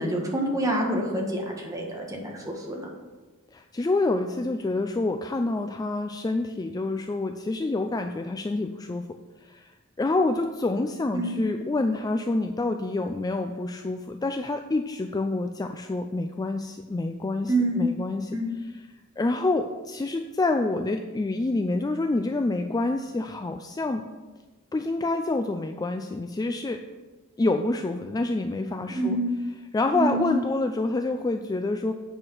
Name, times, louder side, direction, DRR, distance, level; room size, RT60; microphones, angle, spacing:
voice 1, 0.0-2.9 11.1-11.4 17.5-17.8 18.3-18.5 29.0-29.3 29.9-30.3, right 1 dB, 15° right, -1 dB, 1.5 m, -27 dB
voice 2, 3.5-9.7 10.0-18.4 19.2-24.0 24.7-26.8 27.4-29.2 29.7-31.9, left 2 dB, 15° left, 6 dB, 0.3 m, -27 dB
8.5 x 4.8 x 6.4 m, 1.3 s
head